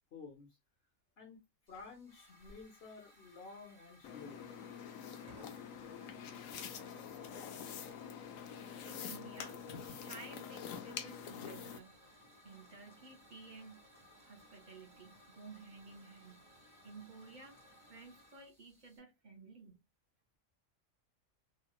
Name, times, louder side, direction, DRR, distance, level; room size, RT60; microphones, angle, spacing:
voice 1, 0.1-0.6 1.2-1.4 1.7-4.5, left 4 dB, 55° left, 0.9 m, -52 dB
Hiss / Fire, 1.7-19.0, equal, 5° right, 1.3 m, -62 dB
sound 1, 4.0-11.8, left 7 dB, 80° left, 1.0 m, -46 dB
voice 2, 8.8-9.7 10.0-13.9 14.2-16.5 16.8-17.6 17.9-19.8, right 3 dB, 45° right, 0.7 m, -54 dB
3.1 x 2.7 x 2.3 m
omnidirectional pair, 1.4 m